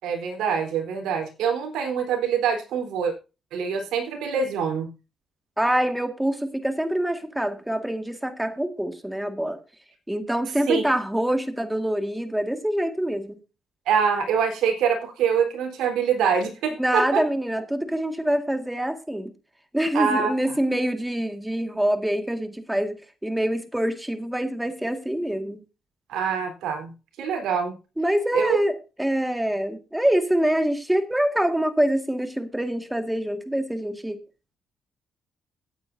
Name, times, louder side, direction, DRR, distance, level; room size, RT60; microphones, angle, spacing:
voice 1, 0.0-3.1 3.5-4.9 10.7-10.8 13.9-17.2 19.9-20.3 26.1-26.9 27.2-27.8 28.3-28.5, right 7 dB, 85° right, 2 dB, 4.0 m, -24 dB
voice 2, 5.6-9.6 10.1-13.4 16.8-19.3 19.7-25.6 28.0-34.2, right 1 dB, 5° right, 7 dB, 1.9 m, -25 dB
17.0 x 9.1 x 2.7 m, 0.30 s
cardioid pair, 90°, 0 cm